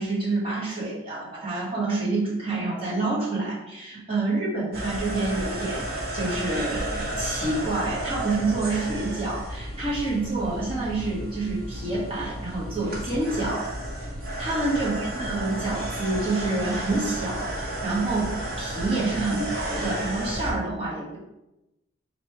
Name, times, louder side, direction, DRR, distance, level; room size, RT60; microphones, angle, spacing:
voice 1, 0.0-5.8 6.1-13.7 14.4-21.2, right 2 dB, 30° right, -6 dB, 1.1 m, -28 dB
sound 1, 4.7-20.5, right 1 dB, 50° right, 0.9 m, -32 dB
3.0 x 2.9 x 4.5 m, 0.94 s
head